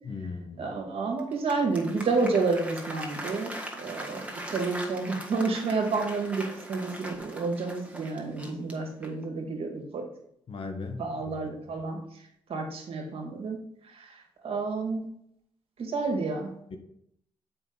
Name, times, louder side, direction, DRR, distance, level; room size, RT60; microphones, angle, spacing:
voice 1, 0.0-0.7 10.5-11.4 16.7-16.8, left 4 dB, 55° left, 6 dB, 1.1 m, -38 dB
voice 2, 0.6-3.5 3.8-10.1 11.0-12.0 12.5-13.6 13.9-14.1 14.4-15.0 15.8-16.5, right 3 dB, 60° right, 3 dB, 1.7 m, -30 dB
Applause, 1.2-9.3, right 1 dB, 10° right, 1.5 m, -41 dB
7.0 x 5.2 x 3.8 m, 0.73 s
supercardioid pair, 50°, 11 cm